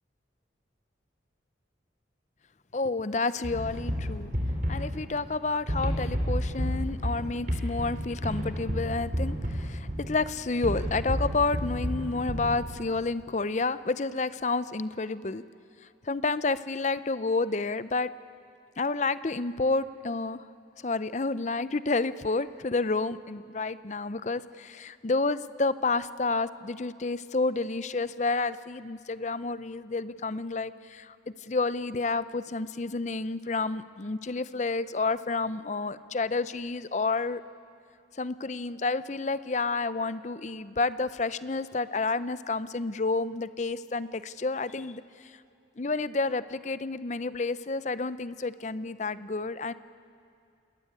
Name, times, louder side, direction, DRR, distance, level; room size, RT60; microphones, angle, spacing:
voice 1, 2.7-4.3 4.7-15.4 16.0-18.1 18.8-20.4 20.8-37.4 38.2-45.3 45.8-49.7, left 3 dB, 40° left, 15 dB, 0.6 m, -30 dB
sound 1, 3.4-13.0, equal, 45° right, 3.7 m, -31 dB
28.5 x 20.0 x 8.7 m, 2.5 s
head